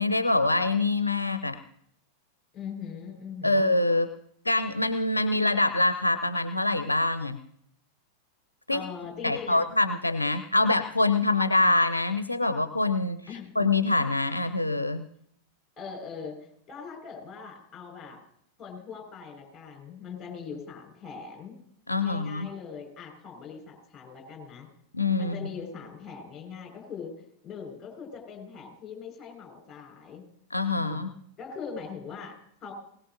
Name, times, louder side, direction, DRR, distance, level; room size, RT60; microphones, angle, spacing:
voice 1, 0.0-1.6 3.4-4.1 4.5-7.4 8.7-8.8 9.2-13.2 13.6-15.0 21.9-22.5 24.9-25.4 30.5-31.1, left 2 dB, 85° left, 11 dB, 0.5 m, -25 dB
voice 2, 2.5-3.7 8.7-9.6 13.3-13.5 15.8-16.4 16.7-18.2 18.6-21.6 22.0-24.7 25.2-27.1 27.4-30.2 30.7-31.1 31.4-32.7, left 6 dB, 25° left, 2 dB, 4.8 m, -41 dB
20.5 x 19.0 x 2.6 m, 0.69 s
figure-of-eight pair, 90°, 0 cm